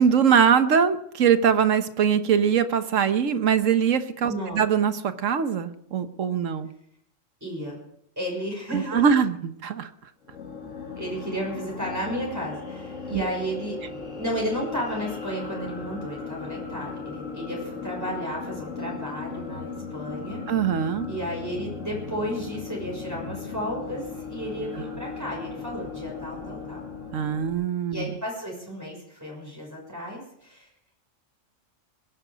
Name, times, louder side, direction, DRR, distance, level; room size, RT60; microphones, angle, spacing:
voice 1, 0.0-6.7 8.7-9.9 13.1-13.2 20.5-21.1 27.1-28.2, right 7 dB, 85° right, 10 dB, 1.4 m, -22 dB
voice 2, 4.3-4.7 7.4-7.8 8.2-9.1 11.0-13.8 14.2-20.4 21.1-26.8 27.9-30.7, equal, 15° right, -3 dB, 6.3 m, -33 dB
sound 1, 10.2-27.5, left 4 dB, 75° left, 2.8 m, -37 dB
21.5 x 11.5 x 5.1 m, 0.72 s
omnidirectional pair, 1.3 m